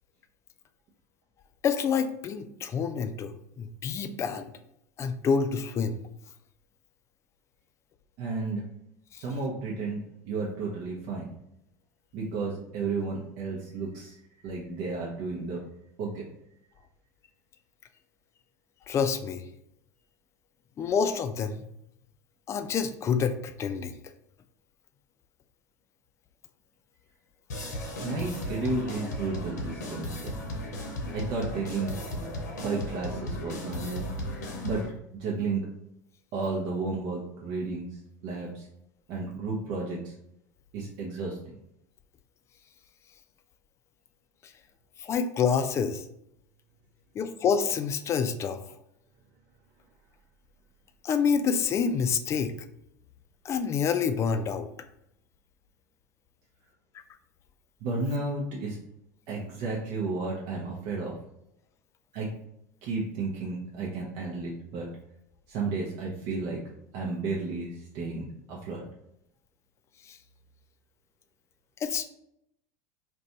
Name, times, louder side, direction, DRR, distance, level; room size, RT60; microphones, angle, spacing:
voice 1, 1.6-4.5 5.0-6.0 9.1-9.2 18.9-19.4 20.8-21.6 22.5-23.9 45.0-46.0 47.2-48.6 51.0-52.5 53.5-54.7 70.1-70.2 71.8-72.0, left 6 dB, 30° left, 9 dB, 0.3 m, -27 dB
voice 2, 8.2-8.6 9.2-11.2 12.1-14.2 14.4-15.6 16.0-16.2 28.0-30.3 31.1-31.9 32.6-34.0 34.6-34.8 35.1-35.7 36.3-37.9 38.2-38.7 39.1-40.1 40.7-41.4 57.8-58.8 59.3-61.1 62.1-62.3 62.8-64.9 65.5-66.6 66.9-68.8, right 3 dB, 60° right, -3 dB, 0.6 m, -32 dB
sound 1, 27.5-34.9, left 1 dB, 90° left, 0.7 m, -35 dB
2.5 x 2.2 x 4.0 m, 0.79 s
hypercardioid pair, 90°, 9 cm